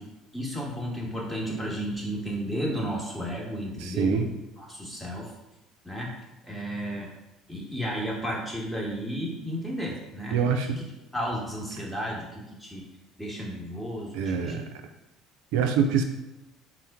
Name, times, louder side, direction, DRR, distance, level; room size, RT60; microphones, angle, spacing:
voice 1, 0.3-5.3 5.8-6.1 6.4-7.1 7.5-10.8 11.1-12.8 13.2-14.6, equal, ahead, -4 dB, 1.3 m, -33 dB
voice 2, 3.8-4.3 10.3-10.8 14.1-14.7 15.5-16.0, right 6 dB, 75° right, 6 dB, 0.4 m, -25 dB
4.3 x 2.1 x 3.5 m, 0.99 s
hypercardioid pair, 65°, 0 cm